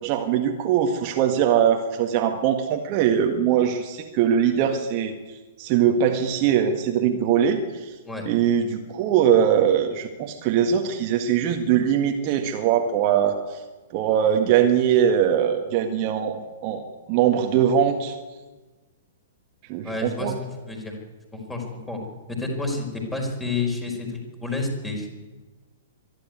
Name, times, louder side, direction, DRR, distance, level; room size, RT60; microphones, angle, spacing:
voice 1, 0.0-5.1 5.6-7.9 8.3-13.6 13.9-16.8 17.1-18.2 19.7-20.3, right 9 dB, 35° right, 4 dB, 1.7 m, -21 dB
voice 2, 19.8-20.3 20.7-20.9 21.3-22.0 22.4-25.1, left 3 dB, 10° left, 2 dB, 5.0 m, -29 dB
24.5 x 11.5 x 9.6 m, 1.3 s
figure-of-eight pair, 110°, 0 cm